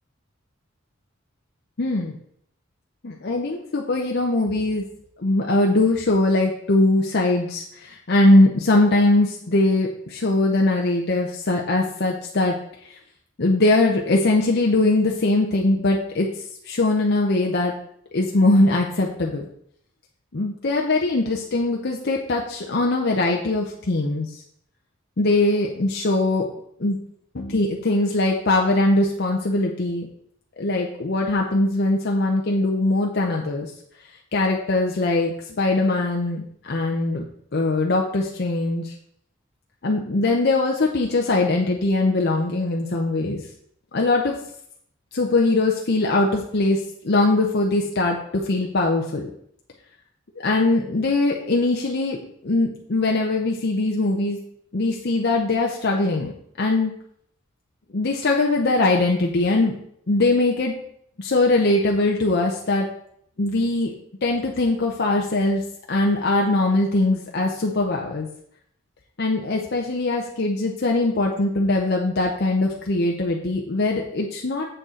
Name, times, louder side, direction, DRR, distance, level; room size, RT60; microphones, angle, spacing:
voice 1, 1.8-2.2 3.0-4.8 5.2-12.5 12.9-13.0 13.4-16.3 16.7-17.7 18.1-19.5 20.3-24.4 25.2-26.5 26.8-27.0 27.3-30.1 30.6-33.7 34.3-37.2 37.5-38.9 39.8-43.4 43.9-44.4 45.1-49.3 50.4-54.4 54.7-56.3 56.6-56.9 57.9-59.7 60.1-60.8 61.2-62.9 63.4-63.9 64.2-65.6 65.9-68.3 69.2-74.7, left 2 dB, 55° left, 0 dB, 0.8 m, -21 dB
7.9 x 6.7 x 3.8 m, 0.69 s
head